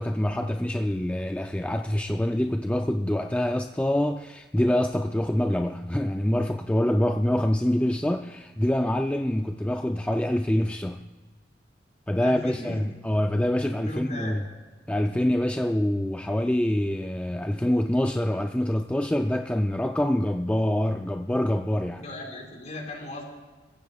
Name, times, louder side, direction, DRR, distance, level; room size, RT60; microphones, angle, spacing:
voice 1, 0.0-11.0 12.1-14.4 14.9-22.0, left 1 dB, 5° left, 0.4 m, -25 dB
voice 2, 12.2-12.9 13.7-14.4 21.9-23.2, left 1 dB, 40° left, 4.9 m, -37 dB
29.5 x 15.5 x 2.4 m
head